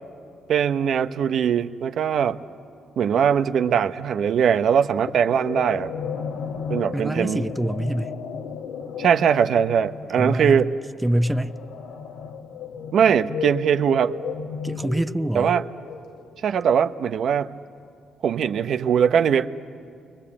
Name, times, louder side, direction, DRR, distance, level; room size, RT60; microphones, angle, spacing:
voice 1, 0.5-2.4 3.0-5.9 6.7-7.5 9.0-10.7 12.9-14.1 15.3-15.6 16.4-17.5 18.2-19.5, right 8 dB, 65° right, 10 dB, 0.9 m, -21 dB
sound 1, 5.1-16.4, left 5 dB, 85° left, 1.9 m, -34 dB
voice 2, 6.9-8.2 10.2-10.6 11.0-11.6 14.6-15.6, right 1 dB, 10° right, 11 dB, 0.6 m, -25 dB
30.0 x 22.5 x 8.7 m, 2.5 s
cardioid pair, 90°, 0 cm